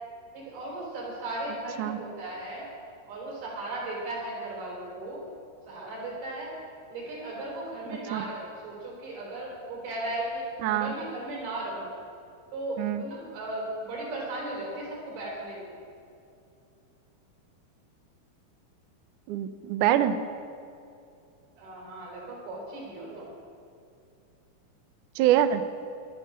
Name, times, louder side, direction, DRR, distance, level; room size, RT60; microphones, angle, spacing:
voice 1, 0.3-2.7 3.1-5.2 5.7-6.5 6.9-10.4 10.7-11.9 12.5-15.7 21.6-23.3, right 2 dB, 70° right, -3 dB, 6.3 m, -36 dB
voice 2, 10.6-10.9 12.8-13.0 19.3-20.2 25.2-25.6, right 11 dB, 90° right, 10 dB, 1.7 m, -24 dB
14.5 x 12.0 x 6.5 m, 2.6 s
omnidirectional pair, 4.5 m